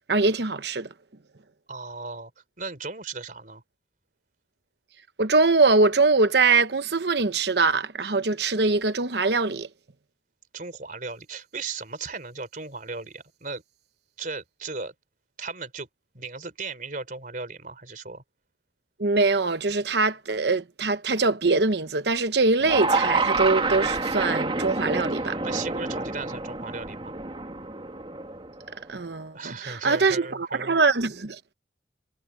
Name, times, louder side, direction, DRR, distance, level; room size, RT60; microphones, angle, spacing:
voice 1, 0.1-0.9 5.2-9.7 19.0-25.4 28.9-31.5, right 3 dB, 65° right, 1.0 m, -23 dB
voice 2, 1.7-2.3 2.6-3.6 10.5-13.6 14.2-14.9 15.4-15.9 16.1-18.2 25.4-27.1 29.3-30.8, right 4 dB, 45° right, 3.6 m, -36 dB
sound 1, 22.6-28.9, right 3 dB, 30° right, 2.1 m, -28 dB
head